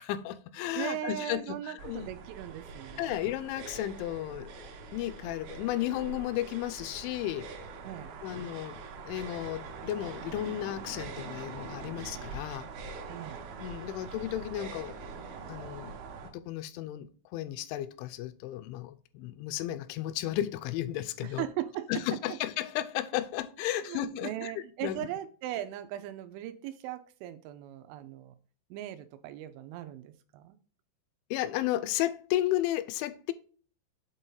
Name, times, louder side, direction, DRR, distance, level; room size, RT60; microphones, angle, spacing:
voice 1, 0.0-2.1 3.0-4.5 4.9-7.5 8.2-12.7 13.6-14.9 15.5-16.0 16.3-21.4 21.9-25.1 31.3-33.3, left 13 dB, 85° left, 2.9 m, -34 dB
voice 2, 0.8-3.2 7.8-8.2 13.1-13.5 21.2-22.0 23.7-28.3 28.7-30.6, right 12 dB, 85° right, 3.0 m, -39 dB
sound 1, 1.8-16.3, right 4 dB, 70° right, 2.6 m, -43 dB
7.9 x 4.1 x 3.8 m
omnidirectional pair, 5.5 m